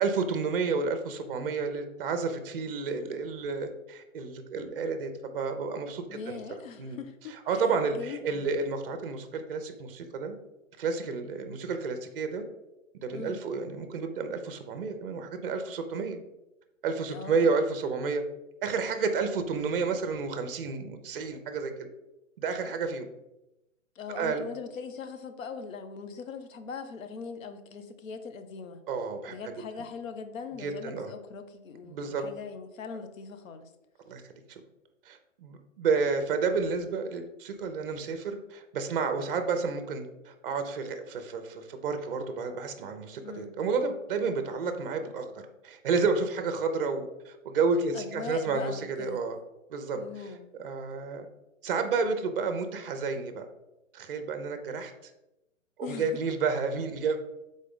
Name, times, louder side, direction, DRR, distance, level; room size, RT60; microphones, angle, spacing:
voice 1, 0.0-6.4 6.8-7.0 7.5-10.4 10.8-12.4 13.0-16.2 16.8-18.2 18.6-21.9 22.4-23.1 24.2-24.4 28.9-29.4 30.6-31.1 31.8-32.2 34.1-34.2 34.5-34.6 35.1-49.4 49.7-51.3 51.6-53.4 53.9-55.1 55.8-57.2, right 4 dB, 45° right, 8 dB, 0.6 m, -31 dB
voice 2, 6.1-8.5 13.1-13.4 17.1-17.5 24.0-28.8 29.3-33.7 43.2-43.5 47.9-49.2 49.9-50.5 55.8-56.2, left 5 dB, 75° left, 9 dB, 0.7 m, -41 dB
3.9 x 3.7 x 3.6 m, 0.92 s
hypercardioid pair, 155°, 40 cm